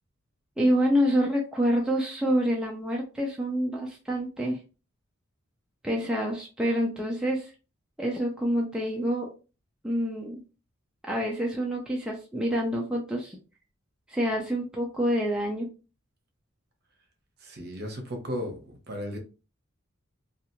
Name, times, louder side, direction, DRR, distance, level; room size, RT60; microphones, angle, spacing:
voice 1, 0.6-4.6 5.8-7.5 8.0-9.3 9.8-10.4 11.1-13.4 14.1-15.7, equal, 5° right, 0.4 m, -27 dB
voice 2, 17.4-19.2, equal, 50° right, 0.8 m, -35 dB
2.8 x 2.4 x 2.7 m
head